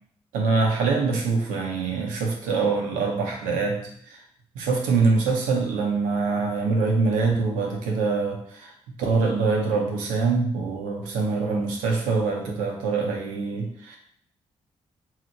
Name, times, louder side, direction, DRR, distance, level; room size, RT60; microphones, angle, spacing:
voice 1, 0.3-4.2 4.6-8.7 9.0-14.0, right 4 dB, 90° right, 0 dB, 0.6 m, -24 dB
2.8 x 2.1 x 3.9 m, 0.62 s
supercardioid pair, 45°, 13 cm